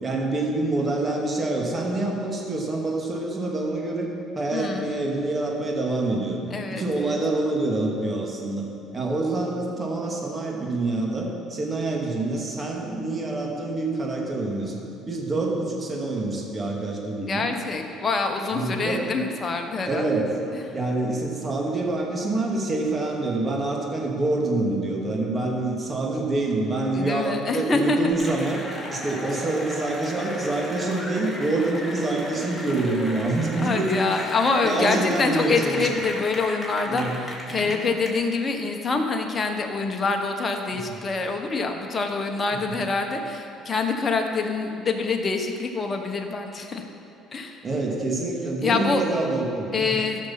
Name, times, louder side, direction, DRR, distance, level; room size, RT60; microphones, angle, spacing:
voice 1, 0.0-4.1 4.3-6.4 6.7-14.8 15.0-17.5 18.5-19.1 19.8-20.3 20.7-28.6 28.9-33.9 34.6-35.9 36.9-37.2 37.5-37.7 40.7-41.0 42.6-42.7 47.6-50.0, right 2 dB, 30° right, -1 dB, 2.5 m, -26 dB
voice 2, 4.5-4.9 6.5-7.2 17.2-20.2 20.5-20.6 26.9-28.1 33.6-46.8 47.3-47.6 48.6-49.0 49.7-50.3, left 4 dB, 35° left, 4 dB, 1.4 m, -26 dB
Cheering / Applause, 28.1-38.1, equal, 5° left, 2.8 m, -35 dB
14.5 x 6.5 x 6.0 m, 2.7 s
hypercardioid pair, 65°, 0 cm